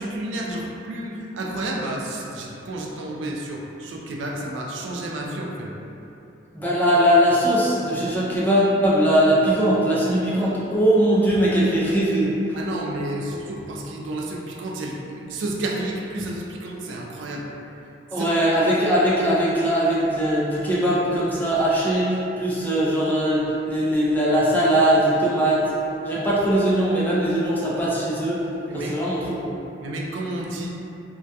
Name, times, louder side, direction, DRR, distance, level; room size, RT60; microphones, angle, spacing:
voice 1, 0.0-5.7 12.5-17.5 18.2-18.3 28.7-29.0 29.8-30.7, right 1 dB, 80° right, -1 dB, 0.3 m, -31 dB
voice 2, 6.5-12.3 18.1-25.7 26.0-28.4 28.7-29.5, right 1 dB, 10° left, -8 dB, 0.3 m, -20 dB
2.2 x 2.2 x 2.6 m, 2.8 s
head